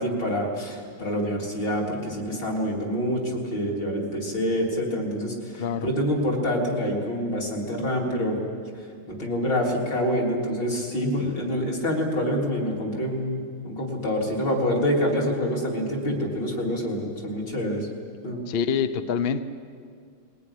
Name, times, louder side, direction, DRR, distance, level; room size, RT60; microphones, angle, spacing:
voice 1, 0.0-8.4 9.1-17.9 18.2-18.4, equal, 55° left, -2 dB, 4.3 m, -26 dB
voice 2, 5.6-5.9 18.5-19.4, left 7 dB, 70° left, 11 dB, 0.5 m, -25 dB
21.0 x 18.5 x 10.0 m, 2.2 s
omnidirectional pair, 2.4 m